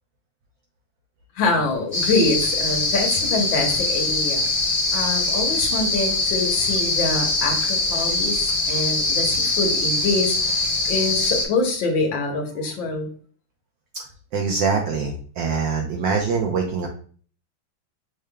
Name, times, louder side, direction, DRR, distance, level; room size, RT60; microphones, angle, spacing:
voice 1, 1.3-4.5 4.9-13.1, left 3 dB, 70° left, 2 dB, 1.6 m, -25 dB
sound 1, 1.9-11.4, left 2 dB, 20° left, 1.3 m, -22 dB
voice 2, 14.3-16.9, right 5 dB, 70° right, 1 dB, 1.2 m, -24 dB
6.5 x 3.5 x 2.2 m, 0.44 s
omnidirectional pair, 2.4 m